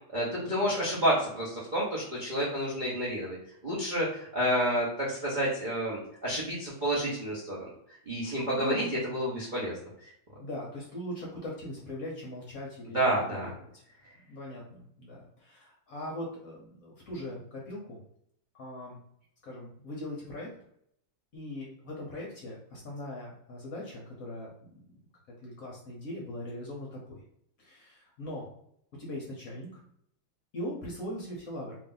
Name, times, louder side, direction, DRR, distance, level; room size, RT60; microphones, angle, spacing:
voice 1, 0.1-3.4 3.6-7.6 8.1-10.1 12.9-13.5, equal, 45° right, -8 dB, 0.6 m, -29 dB
voice 2, 10.4-13.0 13.3-13.8 14.3-18.0 18.5-19.0 19.4-20.5 21.3-24.8 25.4-27.2 27.6-28.5 29.0-29.8 30.5-31.8, left 1 dB, 55° left, -3 dB, 1.1 m, -40 dB
3.2 x 2.6 x 3.8 m, 0.70 s
omnidirectional pair, 2.3 m